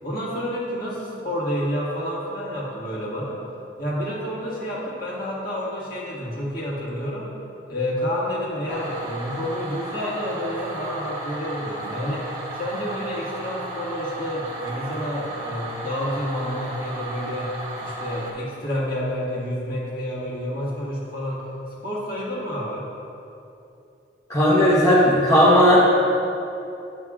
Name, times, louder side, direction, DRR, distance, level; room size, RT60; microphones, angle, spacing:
voice 1, 0.0-3.5 3.8-7.3 7.7-17.5 17.8-21.4 21.8-22.9, equal, 55° left, -6 dB, 1.7 m, -29 dB
sound 1, 8.7-18.3, right 2 dB, 20° right, 1.0 m, -34 dB
voice 2, 24.3-25.9, equal, 20° left, -8 dB, 0.9 m, -15 dB
9.5 x 6.8 x 2.4 m, 2.8 s
head